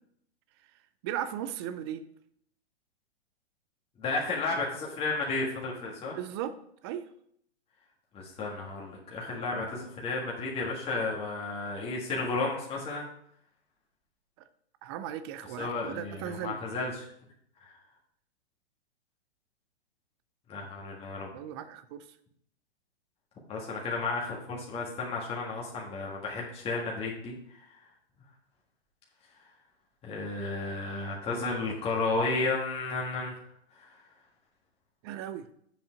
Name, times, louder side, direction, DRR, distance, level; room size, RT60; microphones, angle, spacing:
voice 1, 1.0-2.1 6.1-6.6 6.8-7.1 14.8-16.6 21.3-22.1 35.0-35.5, right 10 dB, 25° right, 12 dB, 0.4 m, -37 dB
voice 2, 4.0-6.2 8.1-13.1 15.6-17.1 17.6-17.7 20.5-21.3 23.5-27.8 30.0-33.3 33.7-33.9, left 3 dB, 15° left, -3 dB, 1.6 m, -33 dB
7.5 x 5.4 x 5.1 m, 0.70 s
hypercardioid pair, 130°, 33 cm